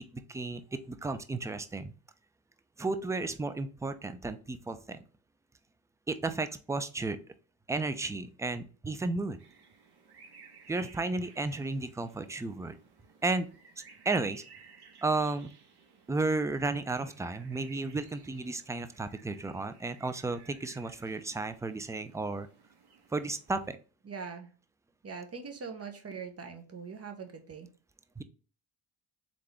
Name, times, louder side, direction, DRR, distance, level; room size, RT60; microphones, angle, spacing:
voice 1, 0.3-1.9 2.8-5.0 6.1-7.2 7.7-9.4 10.7-12.8 13.2-13.5 14.1-14.4 15.0-15.5 16.1-22.5 23.1-23.8 28.2-28.3, right 3 dB, 5° right, 10 dB, 0.4 m, -33 dB
sound 1, 9.4-23.7, right 5 dB, 55° right, 1.5 m, -57 dB
voice 2, 24.0-24.5 25.0-27.7, right 5 dB, 30° right, 5 dB, 1.1 m, -42 dB
3.8 x 3.7 x 3.4 m, 0.37 s
supercardioid pair, 80°, 47 cm